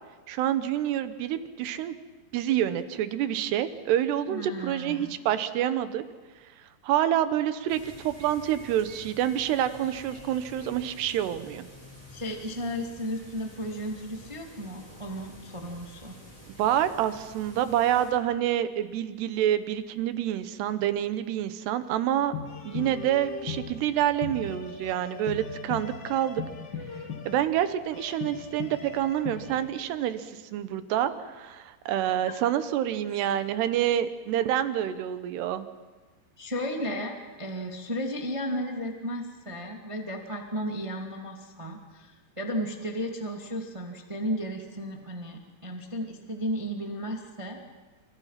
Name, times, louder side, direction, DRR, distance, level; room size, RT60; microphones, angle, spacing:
voice 1, 0.3-2.0 2.3-6.0 6.8-11.7 16.6-22.3 22.6-26.4 27.3-35.7, right 11 dB, 70° right, 11 dB, 3.0 m, -27 dB
voice 2, 4.3-5.2 12.1-16.2 32.3-32.4 36.4-47.6, equal, 20° right, 2 dB, 0.9 m, -34 dB
sound 1, 7.7-18.1, equal, 5° left, 7.4 m, -49 dB
sound 2, 22.2-29.7, left 6 dB, 75° left, 1.0 m, -39 dB
29.5 x 26.5 x 5.9 m, 1.3 s
omnidirectional pair, 5.3 m